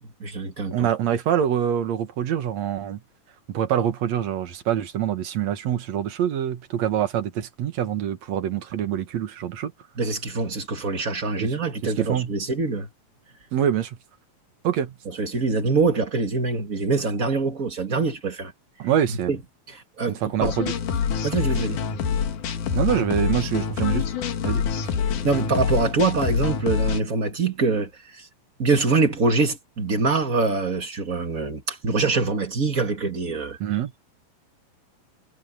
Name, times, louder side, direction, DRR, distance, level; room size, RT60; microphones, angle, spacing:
voice 1, 0.0-0.9 10.0-12.9 15.2-18.5 19.3-19.4 19.7-20.5 21.2-21.9 25.2-28.3 28.6-33.6, right 4 dB, 35° right, 1.5 m, -24 dB
voice 2, 0.7-3.0 3.5-9.7 11.4-11.5 11.8-12.3 13.5-14.0 14.6-14.9 18.8-19.4 20.1-20.7 22.7-24.1 24.4-24.6 33.6-33.9, right 10 dB, 60° right, 2.3 m, -25 dB
sound 1, 20.4-27.0, left 7 dB, 65° left, 3.3 m, -26 dB
omnidirectional pair, 4.0 m